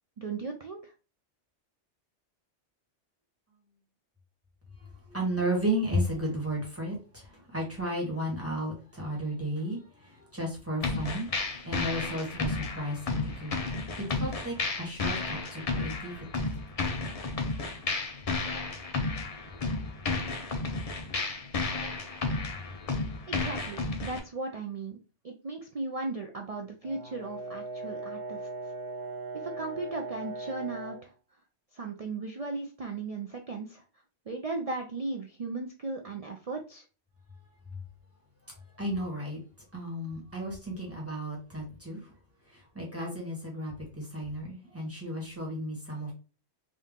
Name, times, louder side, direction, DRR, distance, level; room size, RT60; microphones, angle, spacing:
voice 1, 0.2-0.9 23.3-25.0 25.2-28.4 29.4-31.1 31.7-33.8 34.3-36.8, right 3 dB, 65° right, 0.3 m, -36 dB
voice 2, 5.1-11.3 11.6-13.5 14.0-16.2 20.5-20.6 38.8-39.4 39.7-42.0 42.5-46.1, right 1 dB, 10° right, 1.4 m, -33 dB
sound 1, 10.8-24.2, left 3 dB, 40° left, 0.6 m, -32 dB
Brass instrument, 26.8-31.1, right 2 dB, 90° right, 1.3 m, -39 dB
3.7 x 2.7 x 3.6 m
omnidirectional pair, 1.2 m